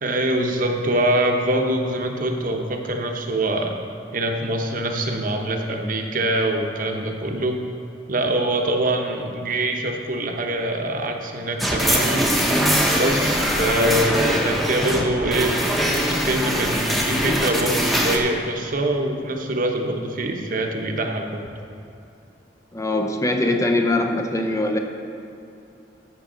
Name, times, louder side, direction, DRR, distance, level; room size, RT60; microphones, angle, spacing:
voice 1, 0.0-3.8 4.1-7.6 8.1-12.3 12.9-15.6 15.9-21.5, right 1 dB, 50° right, 3 dB, 0.9 m, -24 dB
sound 1, 11.6-18.2, equal, ahead, 1.0 m, -22 dB
voice 2, 22.7-24.8, left 2 dB, 20° left, 4 dB, 0.6 m, -22 dB
13.5 x 6.2 x 3.9 m, 2.7 s
head